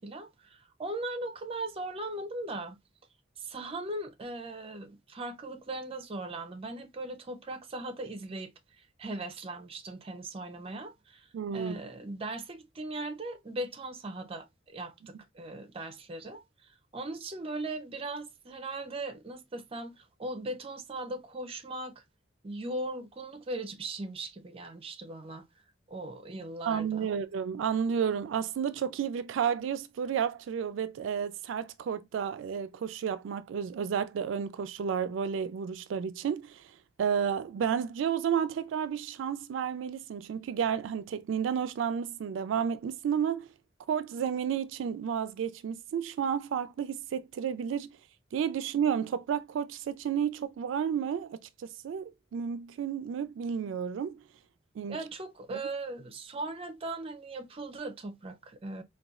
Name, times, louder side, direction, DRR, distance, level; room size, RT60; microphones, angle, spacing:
voice 1, 0.0-2.8 3.4-8.5 8.8-22.0 22.4-25.4 25.9-27.1 54.9-58.8, right 2 dB, 30° right, 0.5 m, -39 dB
voice 2, 11.3-11.7 26.7-36.6 37.0-43.5 43.9-47.9 48.3-51.4 51.8-54.2 54.8-55.0, right 7 dB, 90° right, 0.3 m, -31 dB
4.0 x 2.2 x 2.3 m
head